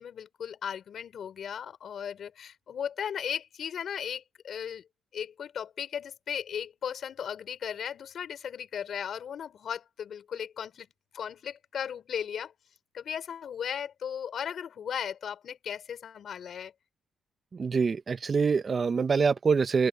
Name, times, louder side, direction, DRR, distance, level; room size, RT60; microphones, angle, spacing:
voice 1, 0.0-4.8 5.1-10.9 11.1-12.5 12.9-16.7, left 8 dB, 60° left, 3.8 m, -36 dB
voice 2, 17.6-19.9, right 5 dB, 40° right, 0.5 m, -25 dB
open air
cardioid pair, 90°, 0 cm